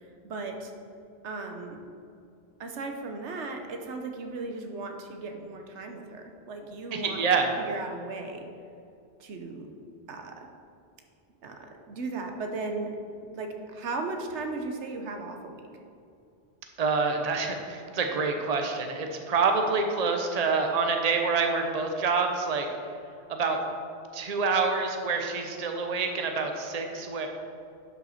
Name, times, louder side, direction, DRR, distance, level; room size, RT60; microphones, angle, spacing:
voice 1, 0.2-0.7 1.2-1.8 2.6-7.2 7.6-8.5 9.2-9.7 10.1-10.5 11.4-13.0 13.3-15.7, right 3 dB, 90° right, 4 dB, 1.2 m, -36 dB
voice 2, 6.9-7.5 16.8-22.7 23.3-23.6 24.1-27.3, right 4 dB, 40° right, 4 dB, 0.8 m, -27 dB
11.0 x 5.7 x 4.2 m, 2.4 s
omnidirectional pair, 1.1 m